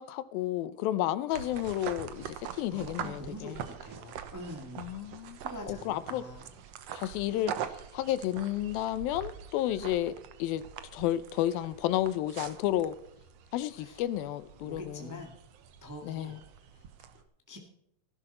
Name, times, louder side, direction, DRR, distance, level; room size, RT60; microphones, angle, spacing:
voice 1, 0.0-3.7 4.8-5.4 5.7-6.3 6.9-10.6 10.9-13.0 13.5-15.2 16.0-16.4, left 13 dB, 85° left, 2.6 m, -32 dB
sound 1, 1.3-17.2, right 9 dB, 70° right, 1.6 m, -44 dB
voice 2, 2.7-4.9 5.4-6.4 7.0-7.1 13.8-14.0 14.6-15.3 15.8-16.4 16.7-16.8 17.5-17.7, left 1 dB, 10° right, 0.9 m, -44 dB
16.0 x 12.5 x 4.3 m
omnidirectional pair, 4.1 m